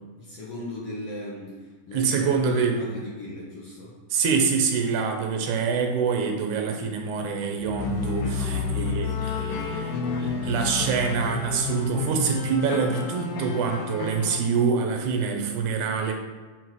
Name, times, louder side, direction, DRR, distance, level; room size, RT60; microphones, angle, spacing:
voice 1, 0.2-3.9 8.3-10.4, left 1 dB, 60° left, -5 dB, 1.9 m, -38 dB
voice 2, 1.9-3.0 4.1-16.1, right 5 dB, 70° right, 3 dB, 2.2 m, -26 dB
sound 1, 7.6-14.4, left 4 dB, 90° left, 2.5 m, -30 dB
8.0 x 4.5 x 4.7 m, 1.4 s
omnidirectional pair, 3.9 m